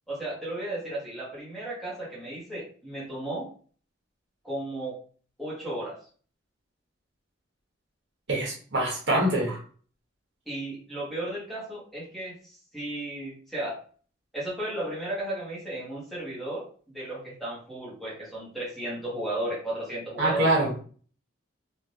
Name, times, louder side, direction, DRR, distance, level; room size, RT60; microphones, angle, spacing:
voice 1, 0.1-3.5 4.4-5.0 5.4-6.0 9.5-9.6 10.5-13.8 14.3-16.7 16.9-20.5, right 1 dB, ahead, -7 dB, 1.1 m, -34 dB
voice 2, 8.3-9.6 20.2-20.8, right 1 dB, 65° right, -3 dB, 1.1 m, -24 dB
3.3 x 2.4 x 2.7 m, 0.43 s
head